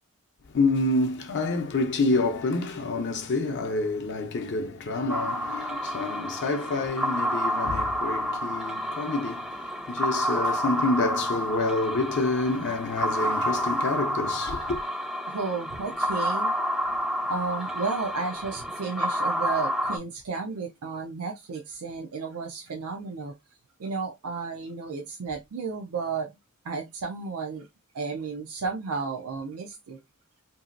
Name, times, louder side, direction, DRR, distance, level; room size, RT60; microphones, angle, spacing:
voice 1, 0.5-14.8, left 2 dB, 55° left, 0.5 m, -28 dB
sound 1, 5.1-20.0, equal, ahead, 0.3 m, -29 dB
voice 2, 15.3-16.5 17.3-23.3 23.8-26.3 26.6-27.7 27.9-30.0, right 4 dB, 90° right, 0.5 m, -33 dB
2.9 x 2.7 x 2.4 m
head